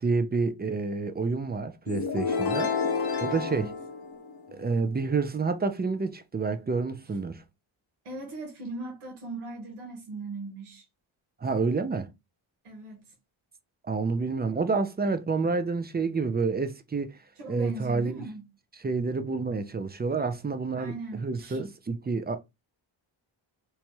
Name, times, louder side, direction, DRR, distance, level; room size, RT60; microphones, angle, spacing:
voice 1, 0.0-2.7 3.2-3.7 4.5-7.4 11.4-12.1 13.9-17.2 17.5-18.3 18.8-21.0 21.2-22.4, right 4 dB, 20° right, 0.4 m, -28 dB
sound 1, 1.9-4.7, left 5 dB, 50° left, 0.7 m, -30 dB
voice 2, 3.3-3.7 8.0-10.8 12.6-13.1 17.4-18.5 20.7-21.6, right 2 dB, 85° right, 1.1 m, -39 dB
3.0 x 2.2 x 3.0 m
cardioid pair, 60°, 49 cm